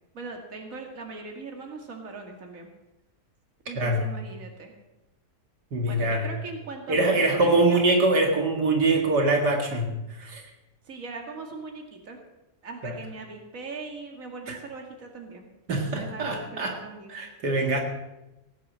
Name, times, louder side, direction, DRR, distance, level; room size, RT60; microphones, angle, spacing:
voice 1, 0.1-2.7 3.7-4.7 5.9-7.8 10.8-12.2 12.6-17.2, right 3 dB, 55° right, 3 dB, 2.5 m, -40 dB
voice 2, 5.7-6.2 6.9-10.4 12.8-12.9 14.5-14.6 15.7-16.8 17.1-17.8, right 2 dB, 75° right, 3 dB, 2.6 m, -23 dB
17.5 x 9.5 x 7.4 m, 0.96 s
omnidirectional pair, 1.8 m